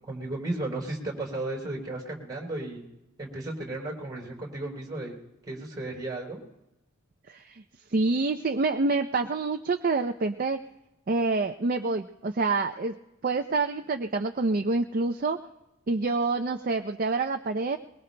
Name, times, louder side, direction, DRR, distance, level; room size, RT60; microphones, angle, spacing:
voice 1, 0.0-2.9 3.2-5.2 5.5-6.4, right 2 dB, 20° right, 0 dB, 3.7 m, -34 dB
voice 2, 7.3-7.6 7.9-10.6 11.1-12.9 13.2-15.4 15.9-17.8, right 3 dB, 40° right, 6 dB, 0.5 m, -27 dB
22.0 x 22.0 x 2.2 m, 0.94 s
head